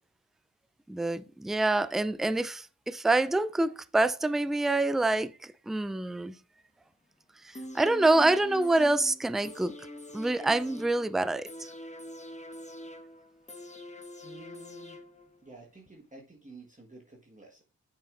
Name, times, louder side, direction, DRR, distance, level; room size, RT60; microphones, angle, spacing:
voice 1, 0.9-6.3 7.4-9.7 10.1-11.7, right 2 dB, ahead, 0.4 m, -26 dB
sound 1, 7.5-15.5 15.9-16.0, left 1 dB, 20° left, 1.2 m, -45 dB
voice 2, 14.2-15.0 15.4-17.6, right 2 dB, 20° right, 1.5 m, -51 dB
8.3 x 6.3 x 2.5 m
supercardioid pair, 40°, 38 cm